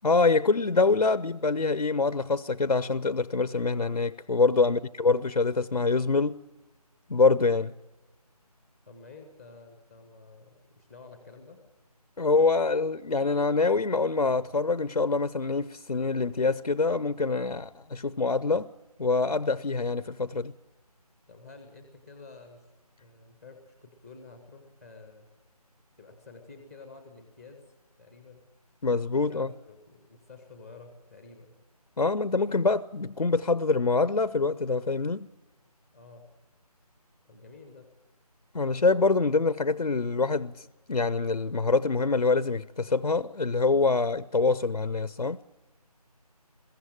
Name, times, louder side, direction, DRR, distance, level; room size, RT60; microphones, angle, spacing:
voice 1, 0.0-6.4 7.1-7.7 12.2-18.7 19.0-20.5 28.8-29.5 32.0-35.3 38.5-45.4, left 4 dB, 90° left, 0.7 m, -25 dB
voice 2, 8.8-11.6 21.3-22.7 23.0-25.3 26.0-27.6 28.0-28.4 29.1-31.6 35.9-36.3 37.3-37.9, left 3 dB, ahead, 0.6 m, -50 dB
21.5 x 16.0 x 8.8 m
figure-of-eight pair, 160°, 20 cm